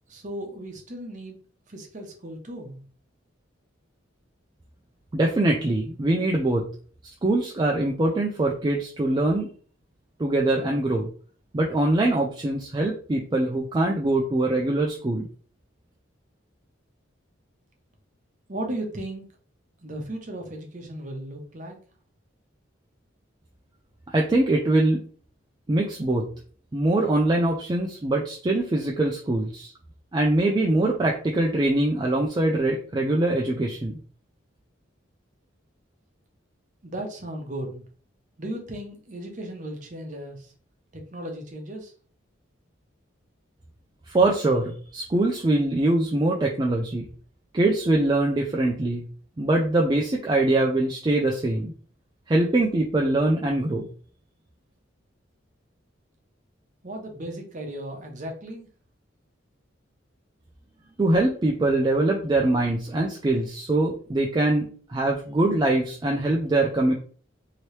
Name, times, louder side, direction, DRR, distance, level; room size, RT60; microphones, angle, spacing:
voice 1, 0.1-1.4 1.7-2.8 18.5-19.3 19.8-21.8 36.8-37.8 38.4-40.5 40.9-41.9 56.8-58.7, right 1 dB, 40° right, 2 dB, 0.8 m, -36 dB
voice 2, 5.1-6.7 7.0-9.5 10.2-11.1 11.5-15.3 24.1-25.0 25.7-26.3 26.7-29.7 30.1-34.0 44.1-47.0 47.5-49.1 49.4-51.7 52.3-53.9 61.0-66.9, right 2 dB, 20° right, -1 dB, 0.3 m, -23 dB
3.0 x 2.8 x 3.1 m, 0.44 s
head